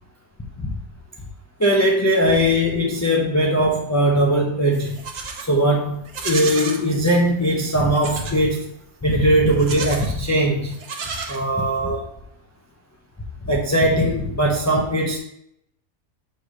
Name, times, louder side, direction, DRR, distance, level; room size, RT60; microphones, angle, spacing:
voice 1, 1.6-5.0 5.5-8.6 9.0-10.8 11.3-12.1 13.4-15.2, equal, 20° left, -2 dB, 0.4 m, -20 dB
Livestock farm animals working animals, 4.7-5.5 6.0-6.8 7.9-8.4 9.5-10.2 10.7-11.8, right 5 dB, 75° right, 1.3 m, -32 dB
6.8 x 3.3 x 5.0 m, 0.76 s
omnidirectional pair, 1.6 m